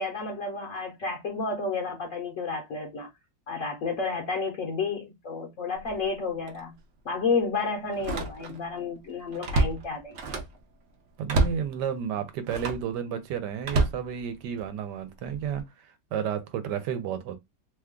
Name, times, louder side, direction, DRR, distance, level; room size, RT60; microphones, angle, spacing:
voice 1, 0.0-3.1 3.5-6.7 7.0-10.2, left 4 dB, 60° left, 1.0 m, -31 dB
Slam, 5.8-6.0 6.5-6.6 7.9-8.7 9.1-10.6 11.3-11.7 12.4-12.9 13.6-14.7 15.3-15.6, right 2 dB, 60° right, 0.8 m, -28 dB
voice 2, 11.2-17.4, right 8 dB, 85° right, 1.2 m, -32 dB
3.0 x 2.3 x 3.5 m
omnidirectional pair, 1.8 m